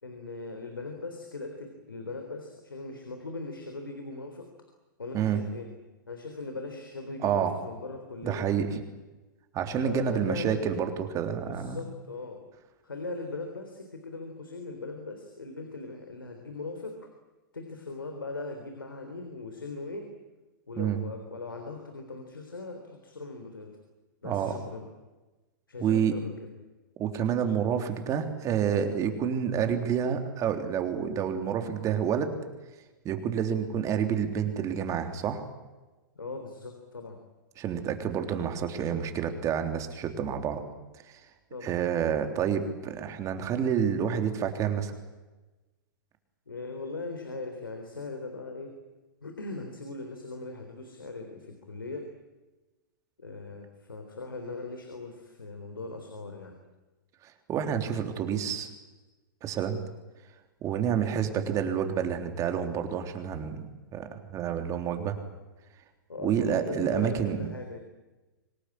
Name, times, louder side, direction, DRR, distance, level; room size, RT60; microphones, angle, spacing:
voice 1, 0.0-4.5 5.0-5.7 6.1-8.5 9.8-10.7 11.5-12.4 12.8-17.1 17.5-20.1 20.7-23.8 24.2-24.9 25.7-26.5 36.2-37.2 41.5-41.7 46.5-48.8 49.2-52.1 53.2-56.5 66.1-67.8, left 3 dB, 90° left, 5 dB, 3.8 m, -39 dB
voice 2, 7.2-7.5 8.2-8.8 9.5-11.8 20.8-21.0 24.2-24.5 25.8-26.1 27.0-32.3 33.1-35.4 37.6-40.6 41.1-41.2 41.6-44.9 57.2-58.7 59.4-59.8 60.6-65.2 66.2-67.4, right 8 dB, 30° right, 6 dB, 3.5 m, -29 dB
26.0 x 19.0 x 10.0 m, 1.1 s
hypercardioid pair, 110°, 11 cm